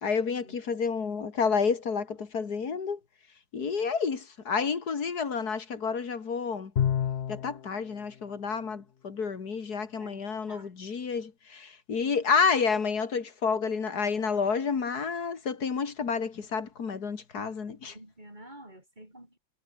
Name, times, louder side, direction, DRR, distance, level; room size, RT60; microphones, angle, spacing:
voice 1, 0.0-3.0 3.5-6.7 7.3-17.9, left 5 dB, 55° left, 2.4 m, -30 dB
Bowed string instrument, 6.8-7.6, left 9 dB, 75° left, 0.5 m, -27 dB
voice 2, 10.0-10.7 17.9-19.4, right 1 dB, 20° right, 7.6 m, -50 dB
omnidirectional pair, 2.1 m